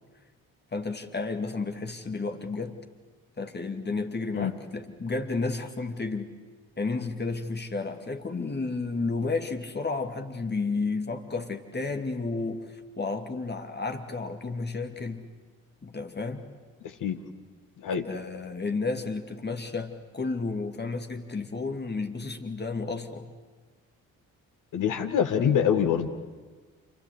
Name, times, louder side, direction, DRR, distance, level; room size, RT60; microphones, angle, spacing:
voice 1, 0.7-2.7 3.4-6.3 6.8-15.3 15.8-16.5 18.0-23.3, left 3 dB, 25° left, 6 dB, 2.4 m, -32 dB
voice 2, 16.8-17.2 17.8-18.1 24.7-26.1, left 8 dB, 50° left, 7 dB, 1.8 m, -25 dB
27.5 x 23.0 x 8.1 m, 1.4 s
figure-of-eight pair, 45°, 41 cm